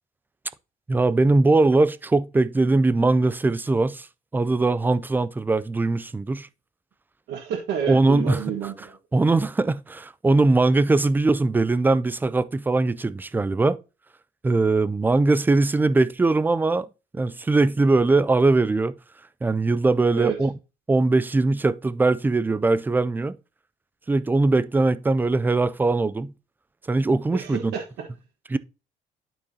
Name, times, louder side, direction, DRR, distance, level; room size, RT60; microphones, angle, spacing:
voice 1, 0.9-4.1 4.3-6.5 7.9-8.4 9.1-13.8 14.4-16.9 17.1-18.9 19.4-20.5 20.9-23.4 24.1-26.3 26.9-27.6 28.5-28.6, right 3 dB, 10° right, 0.3 m, -21 dB
voice 2, 7.3-9.0 20.1-20.3 27.3-28.0, right 7 dB, 80° right, 1.4 m, -30 dB
12.0 x 4.6 x 2.8 m
cardioid pair, 110°, 17 cm